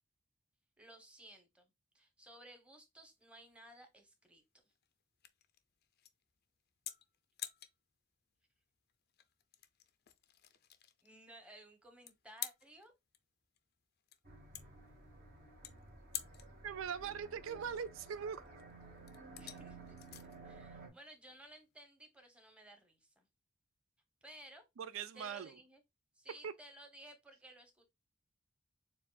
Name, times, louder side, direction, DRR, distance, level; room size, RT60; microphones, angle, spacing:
voice 1, 0.8-1.7 1.9-4.4 11.0-12.9 19.4-19.8 20.4-23.3 24.2-24.6 25.1-25.8 26.2-27.8, right 1 dB, 5° right, 1.0 m, -57 dB
sound 1, 3.0-21.8, left 12 dB, 55° left, 0.5 m, -52 dB
sound 2, 14.2-20.9, right 3 dB, 50° right, 1.3 m, -54 dB
voice 2, 16.6-18.4 24.8-25.6 26.4-26.5, right 7 dB, 85° right, 0.4 m, -41 dB
6.9 x 2.4 x 2.4 m
head